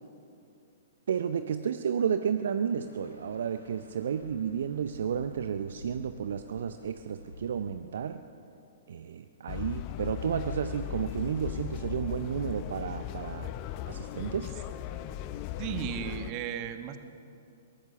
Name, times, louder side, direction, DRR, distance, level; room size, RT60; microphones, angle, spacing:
voice 1, 1.1-8.2 8.9-13.5 13.9-14.5, right 7 dB, 55° right, 10 dB, 0.7 m, -32 dB
sound 1, 2.6-7.6, left 1 dB, 85° left, 4.0 m, -52 dB
sound 2, 9.5-16.3, left 12 dB, 35° left, 0.8 m, -38 dB
voice 2, 15.6-17.0, right 9 dB, 35° right, 9 dB, 1.5 m, -35 dB
22.5 x 18.0 x 6.8 m, 2.6 s
figure-of-eight pair, 110°, 0 cm